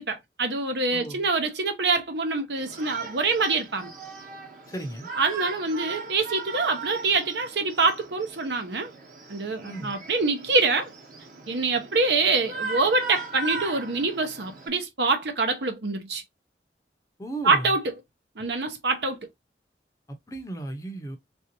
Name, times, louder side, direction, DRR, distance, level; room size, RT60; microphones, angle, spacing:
voice 1, 0.0-3.9 5.2-8.9 9.3-10.9 11.5-16.2 17.4-17.8 18.4-19.2, right 3 dB, 75° right, 0.8 m, -25 dB
voice 2, 0.9-1.3 4.7-5.1 9.6-10.0 17.2-17.8 20.1-21.2, right 2 dB, 20° left, 0.5 m, -35 dB
Shout, 2.6-14.7, right 4 dB, 45° right, 1.0 m, -38 dB
3.4 x 2.6 x 2.8 m
head